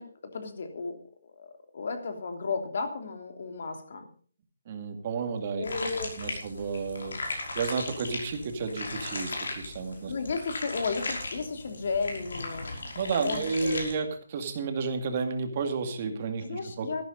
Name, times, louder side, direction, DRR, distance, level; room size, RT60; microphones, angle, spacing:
voice 1, 0.0-4.1 5.6-6.4 10.1-12.7 13.2-13.9 16.4-17.0, left 4 dB, 55° left, 6 dB, 3.1 m, -34 dB
voice 2, 4.7-5.6 6.2-10.1 12.7-16.9, right 5 dB, 35° right, 5 dB, 2.3 m, -32 dB
sound 1, 5.6-14.0, left 2 dB, 80° left, 5.7 m, -37 dB
14.0 x 11.5 x 5.3 m, 0.44 s
hypercardioid pair, 165°, 0 cm